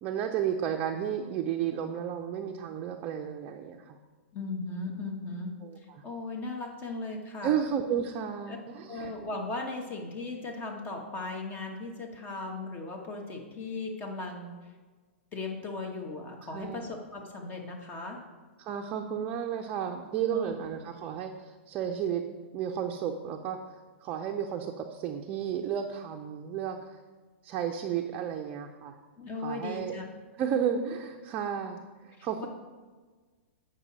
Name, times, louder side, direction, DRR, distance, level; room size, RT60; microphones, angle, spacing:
voice 1, 0.0-4.0 5.6-5.8 7.4-9.1 16.5-16.9 18.6-22.2 22.5-23.6 24.0-26.8 27.4-28.9 29.4-29.9 30.4-32.5, right 8 dB, 35° right, 2 dB, 0.6 m, -32 dB
voice 2, 4.3-7.6 8.5-8.6 8.9-14.5 15.3-18.2 20.3-20.6 29.2-30.1 32.2-32.5, left 3 dB, 25° left, 2 dB, 1.5 m, -37 dB
8.6 x 5.3 x 4.1 m, 1.4 s
hypercardioid pair, 120°, 7 cm